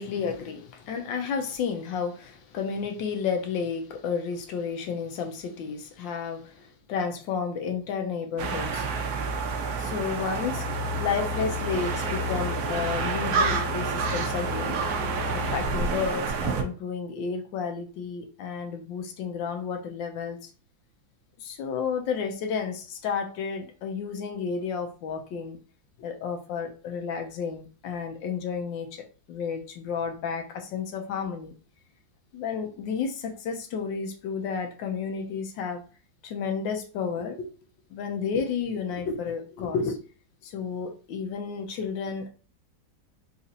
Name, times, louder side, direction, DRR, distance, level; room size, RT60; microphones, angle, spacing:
voice 1, 0.0-8.9 9.8-14.8 15.3-20.5 21.4-25.6 26.0-31.5 32.3-35.8 36.2-37.5 37.9-40.0 40.4-42.3, left 6 dB, 80° left, 1.3 m, -32 dB
sound 1, 8.4-16.6, right 3 dB, 65° right, 1.0 m, -28 dB
4.1 x 2.4 x 2.7 m
omnidirectional pair, 2.1 m